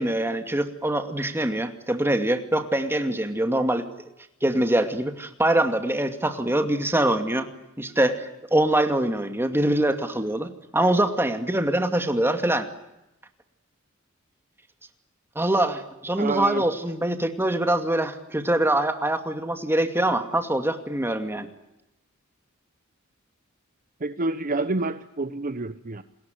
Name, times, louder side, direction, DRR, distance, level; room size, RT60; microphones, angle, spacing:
voice 1, 0.0-3.8 4.4-7.5 7.8-12.7 15.4-21.5, right 1 dB, 10° right, 7 dB, 2.4 m, -24 dB
voice 2, 16.2-16.7 24.0-26.0, right 3 dB, 40° right, 11 dB, 1.0 m, -28 dB
28.5 x 21.0 x 9.4 m, 0.91 s
head